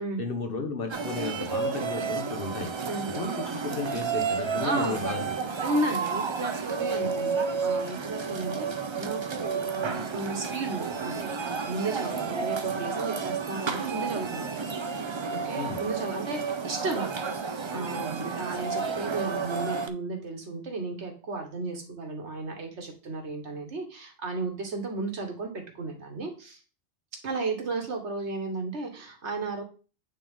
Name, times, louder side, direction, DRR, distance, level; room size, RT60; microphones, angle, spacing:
voice 1, 0.2-2.7 3.1-5.3 15.6-15.8, left 3 dB, 55° left, 4 dB, 1.5 m, -33 dB
sound 1, 0.9-19.9, right 5 dB, 45° right, 0.4 m, -31 dB
voice 2, 4.4-5.4 5.6-14.7 15.0-26.6 27.2-29.6, right 3 dB, 80° right, 3 dB, 1.6 m, -34 dB
8.7 x 3.6 x 3.6 m, 0.36 s
omnidirectional pair, 1.2 m